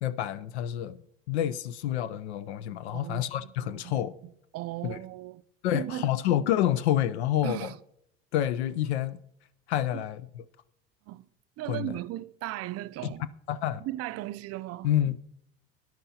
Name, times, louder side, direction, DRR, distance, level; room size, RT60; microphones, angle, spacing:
voice 1, 0.0-1.0 1.3-4.1 4.8-5.0 5.6-7.7 8.3-9.2 9.7-10.4 11.7-11.9 13.5-13.8 14.8-15.2, left 11 dB, 90° left, 0.5 m, -28 dB
voice 2, 2.9-3.9 4.2-5.4 5.7-6.1 7.4-7.8 9.9-10.0 11.1-11.3 11.6-13.2 13.8-14.9, right 15 dB, 50° right, 0.5 m, -37 dB
17.0 x 10.5 x 2.8 m
hypercardioid pair, 80°, 32 cm